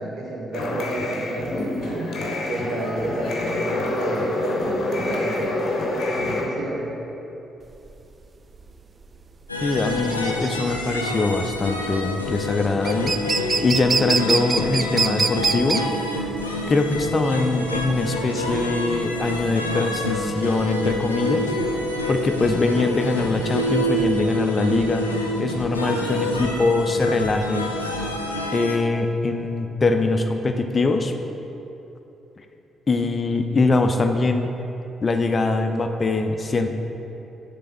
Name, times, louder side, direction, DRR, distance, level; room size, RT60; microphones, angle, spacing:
voice 1, 0.0-2.2 2.4-5.9 6.2-6.9, right 2 dB, 55° right, -2 dB, 1.1 m, -31 dB
sound 1, 0.5-6.4, left 2 dB, 55° left, 0.9 m, -27 dB
sound 2, 7.7-24.0, right 4 dB, 40° right, 0.3 m, -27 dB
sound 3, 9.5-28.8, left 1 dB, 90° left, 0.4 m, -27 dB
voice 2, 9.6-13.2 13.6-15.9 16.7-21.5 22.1-25.1 25.4-27.7 28.5-31.1 32.9-34.5 35.0-36.7, left 3 dB, 35° left, 6 dB, 0.5 m, -22 dB
6.7 x 3.7 x 5.4 m, 3.0 s
figure-of-eight pair, 40°, 0 cm